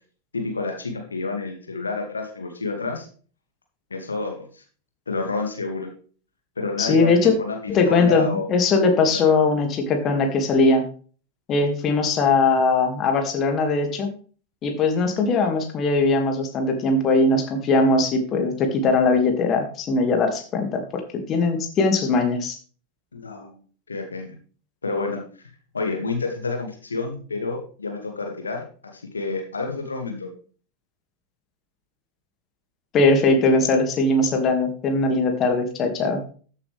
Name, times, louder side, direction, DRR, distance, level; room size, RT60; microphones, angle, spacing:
voice 1, 0.3-3.1 3.9-4.6 5.1-5.9 6.6-8.5 23.1-23.6 23.9-24.3 24.8-25.2 25.7-30.3, left 3 dB, 75° left, 3 dB, 2.3 m, -29 dB
voice 2, 6.8-7.3 7.7-10.8 11.5-14.1 14.6-22.6 32.9-36.2, left 3 dB, 30° left, 4 dB, 2.3 m, -20 dB
13.5 x 8.3 x 3.5 m, 0.41 s
figure-of-eight pair, 90°, 0 cm